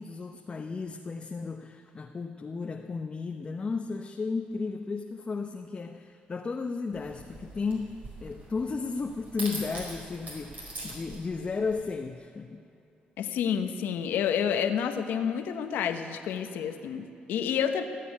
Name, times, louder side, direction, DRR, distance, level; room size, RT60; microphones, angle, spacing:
voice 1, 0.0-8.0 8.2-12.6, left 4 dB, 35° left, 4 dB, 0.8 m, -34 dB
sound 1, 6.9-11.9, right 2 dB, 55° right, 4.7 m, -43 dB
voice 2, 13.2-17.8, left 8 dB, 85° left, 8 dB, 1.0 m, -29 dB
16.5 x 8.6 x 9.6 m, 2.7 s
cardioid pair, 80°, 3 cm